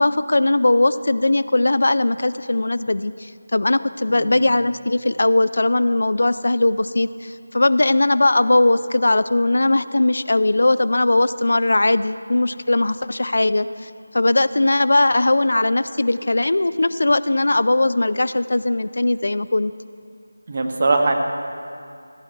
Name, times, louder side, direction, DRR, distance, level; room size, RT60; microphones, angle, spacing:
voice 1, 0.0-19.7, left 2 dB, 65° left, 15 dB, 0.3 m, -19 dB
voice 2, 4.1-4.5 20.5-21.1, right 3 dB, 40° right, 4 dB, 1.1 m, -21 dB
15.5 x 9.0 x 4.5 m, 2.3 s
figure-of-eight pair, 170°, 0 cm